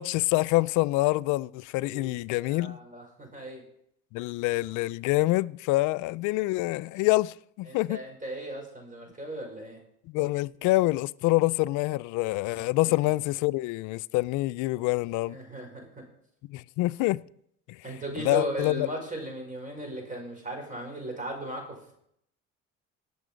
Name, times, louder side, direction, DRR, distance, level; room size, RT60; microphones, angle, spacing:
voice 1, 0.0-2.8 4.1-8.0 10.1-15.4 16.5-17.2 17.7-17.8 18.2-18.9, left 20 dB, 75° left, 0.5 m, -26 dB
voice 2, 2.4-3.6 7.7-9.8 12.8-12.9 15.3-16.0 17.8-21.9, right 1 dB, 25° right, 5.8 m, -37 dB
18.5 x 7.0 x 5.2 m
supercardioid pair, 80°, 30 cm